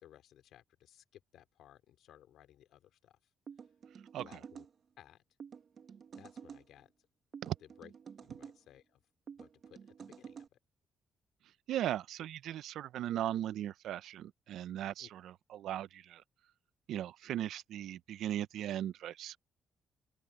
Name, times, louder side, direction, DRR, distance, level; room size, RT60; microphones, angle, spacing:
voice 1, 0.0-3.2 4.1-4.7 5.0-5.2 6.1-6.9 7.6-7.9 8.2-9.0 9.4-10.6 15.0-15.1, left 11 dB, 80° left, 3.1 m, -59 dB
sound 1, 3.5-4.7 5.4-6.6 7.3-8.6 9.3-10.5, right 6 dB, 50° right, 1.5 m, -50 dB
voice 2, 11.7-16.2 16.9-19.4, right 12 dB, 80° right, 0.6 m, -38 dB
open air
cardioid pair, 90°, 0 cm